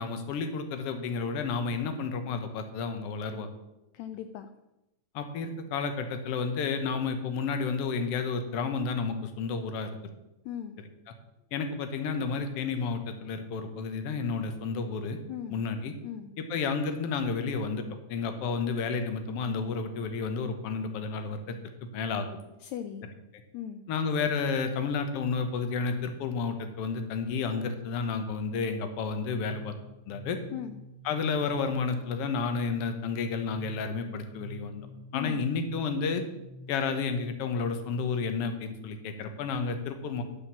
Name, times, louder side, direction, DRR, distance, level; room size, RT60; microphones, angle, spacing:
voice 1, 0.0-3.5 5.1-10.1 10.8-10.9 11.5-15.2 15.5-15.9 16.4-21.6 21.8-22.3 23.9-29.8 30.1-30.4 31.0-34.9 35.1-36.2 36.7-40.2, left 5 dB, 60° left, 7 dB, 1.8 m, -31 dB
voice 2, 3.9-4.5 10.5-10.8 15.3-15.6 16.0-16.3 22.6-23.0 23.5-23.8 30.5-30.8 35.1-35.4, left 9 dB, 80° left, 8 dB, 1.8 m, -38 dB
sound 1, 29.5-37.0, left 3 dB, 40° left, 1.1 m, -48 dB
11.5 x 5.2 x 7.2 m, 0.94 s
omnidirectional pair, 3.4 m